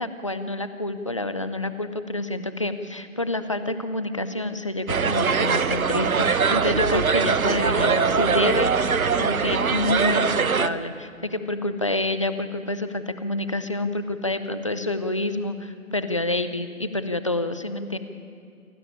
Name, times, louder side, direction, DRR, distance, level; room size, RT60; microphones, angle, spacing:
voice 1, 0.0-18.0, left 2 dB, 25° left, 11 dB, 0.6 m, -28 dB
sound 1, 4.9-10.7, right 5 dB, 80° right, 1.0 m, -22 dB
28.0 x 12.5 x 9.9 m, 2.4 s
figure-of-eight pair, 160°, 42 cm